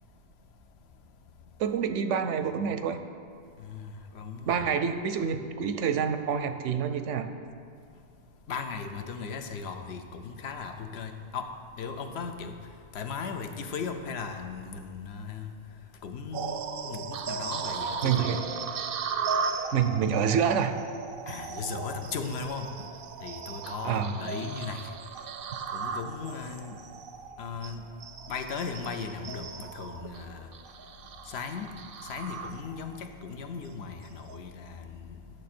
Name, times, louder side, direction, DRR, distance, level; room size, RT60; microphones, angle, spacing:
voice 1, 1.6-3.0 4.5-7.3 18.0-18.4 19.7-20.7 23.8-24.1, right 7 dB, 90° right, 9 dB, 0.9 m, -27 dB
voice 2, 3.6-4.7 8.5-11.5 11.8-12.5 12.9-15.5 16.0-18.4 21.3-22.9 23.2-24.9 25.7-26.8 27.4-27.8 28.3-30.5 31.3-31.7 32.1-35.2, left 5 dB, 65° left, 6 dB, 0.9 m, -37 dB
sound 1, 16.3-33.0 33.4-33.7 34.2-34.4, right 5 dB, 60° right, 0.6 m, -36 dB
10.0 x 6.2 x 4.3 m, 2.3 s
omnidirectional pair, 1.2 m